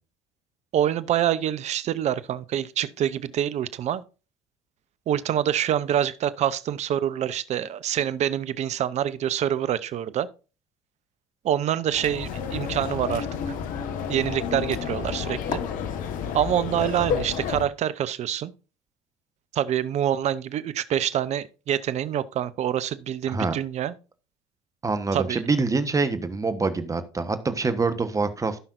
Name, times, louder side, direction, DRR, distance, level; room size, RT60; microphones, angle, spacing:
voice 1, 0.7-4.0 5.1-10.3 11.4-13.3 14.1-15.6 16.3-18.5 19.5-23.9 25.1-25.4, right 10 dB, 45° right, 0.8 m, -26 dB
sound 1, 11.9-17.6, left 7 dB, 60° left, 1.4 m, -30 dB
voice 2, 23.3-23.6 24.8-28.6, right 4 dB, 20° right, 1.2 m, -25 dB
16.5 x 5.6 x 2.6 m
hypercardioid pair, 75°, 15 cm